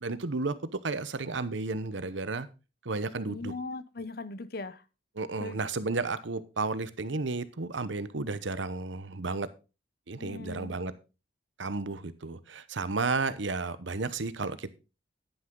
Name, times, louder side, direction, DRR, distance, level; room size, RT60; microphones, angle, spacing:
voice 1, 0.0-0.5 0.8-2.5 2.8-3.5 5.2-9.5 10.1-10.9 11.6-14.7, right 3 dB, 80° right, 14 dB, 0.9 m, -32 dB
voice 2, 3.3-4.8 5.4-5.6 10.2-10.8, left 3 dB, 55° left, 15 dB, 0.7 m, -39 dB
10.5 x 9.5 x 3.8 m, 0.30 s
head